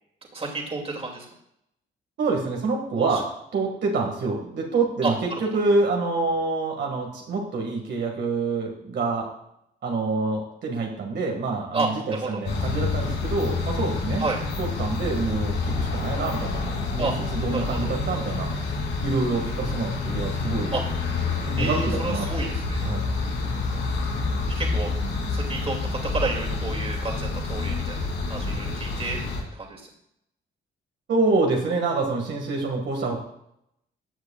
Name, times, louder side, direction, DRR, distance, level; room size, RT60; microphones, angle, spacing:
voice 1, 0.3-1.3 2.9-3.2 5.0-5.4 11.7-12.4 14.2-14.4 17.0-17.1 17.5-17.9 20.7-20.8 21.6-22.8 24.5-24.9 25.3-25.8 26.1-28.0 28.3-29.2 29.5-29.8, right 3 dB, 30° right, 0 dB, 2.6 m, -30 dB
voice 2, 2.2-9.3 9.8-14.2 14.6-18.7 19.0-20.7 21.5-22.5 22.8-23.0 31.1-33.2, right 3 dB, 65° right, 1 dB, 2.0 m, -26 dB
sound 1, 12.4-29.4, left 3 dB, 70° left, 3.0 m, -28 dB
14.5 x 8.0 x 2.4 m, 0.76 s
cardioid pair, 90°, 20 cm